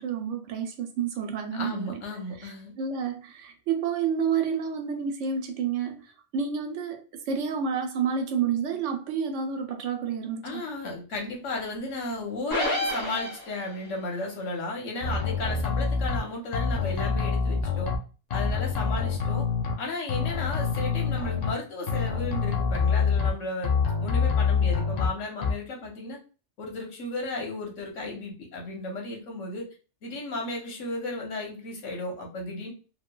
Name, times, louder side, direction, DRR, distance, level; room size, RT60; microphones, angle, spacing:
voice 1, 0.0-2.0 2.4-10.6, right 6 dB, 85° right, 5 dB, 0.9 m, -30 dB
voice 2, 1.5-2.7 10.4-17.9 18.3-19.5 19.8-23.7 24.0-26.2 26.6-29.6 30.0-32.7, left 2 dB, 90° left, 0 dB, 1.2 m, -34 dB
sound 1, 12.5-13.9, equal, 20° left, 1.1 m, -29 dB
sound 2, 15.0-16.2 16.5-18.0 18.3-19.7 20.1-21.5 21.9-23.3 23.6-25.1 25.4-25.5, left 5 dB, 70° left, 0.4 m, -26 dB
3.1 x 2.2 x 2.2 m, 0.35 s
omnidirectional pair, 1.2 m